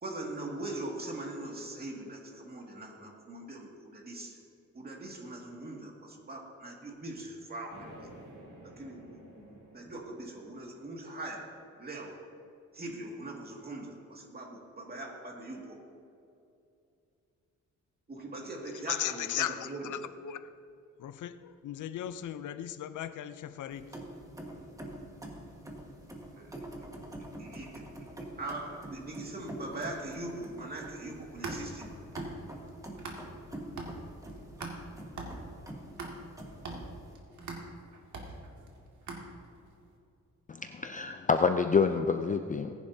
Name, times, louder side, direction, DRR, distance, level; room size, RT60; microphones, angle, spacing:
voice 1, 0.0-4.4 4.7-8.1 8.8-11.5 11.8-12.1 12.7-15.8 18.1-19.9 26.4-26.5 27.4-27.9 28.4-31.9, right 2 dB, 30° right, 2.1 m, -41 dB
sound 1, 7.7-11.6, right 1 dB, 90° right, 3.3 m, -53 dB
voice 2, 18.9-20.5 21.0-24.0, left 11 dB, 80° left, 0.6 m, -37 dB
sound 2, 23.7-37.1, right 1 dB, 10° right, 1.5 m, -45 dB
sound 3, 31.2-33.5 33.8-39.7, right 3 dB, 65° right, 2.1 m, -43 dB
voice 3, 40.5-42.7, left 5 dB, 25° left, 0.4 m, -27 dB
19.0 x 10.5 x 2.8 m
cardioid pair, 120°, 31 cm